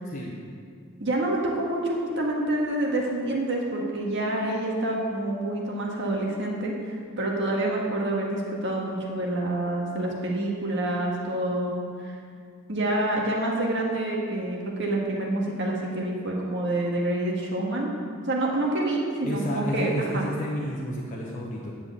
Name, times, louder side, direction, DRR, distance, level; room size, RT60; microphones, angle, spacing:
voice 1, 1.0-12.1 12.7-17.9 18.2-20.2, right 1 dB, 55° right, -2 dB, 1.7 m, -27 dB
voice 2, 19.2-21.7, left 1 dB, 35° left, -4 dB, 1.0 m, -31 dB
10.0 x 5.2 x 8.2 m, 2.2 s
head